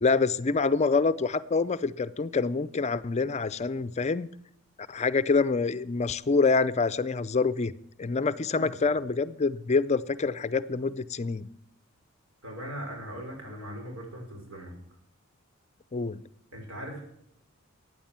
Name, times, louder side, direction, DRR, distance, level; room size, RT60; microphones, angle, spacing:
voice 1, 0.0-4.3 4.9-7.7 8.0-11.5 15.9-16.2, left 4 dB, 35° left, 16 dB, 0.5 m, -26 dB
voice 2, 12.4-14.7 16.5-17.0, equal, 90° right, 1 dB, 4.9 m, -39 dB
15.0 x 9.3 x 7.4 m, 0.75 s
head